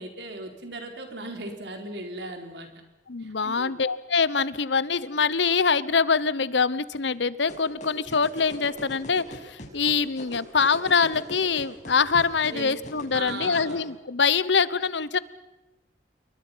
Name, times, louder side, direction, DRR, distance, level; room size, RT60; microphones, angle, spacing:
voice 1, 0.0-2.7 3.2-3.8 12.5-12.7 13.1-13.8, right 2 dB, 70° right, 5 dB, 4.2 m, -37 dB
voice 2, 3.1-15.2, left 5 dB, 85° left, 18 dB, 1.0 m, -24 dB
sound 1, 7.5-13.7, left 1 dB, 45° left, 5.9 m, -39 dB
28.0 x 23.0 x 5.8 m, 1.1 s
head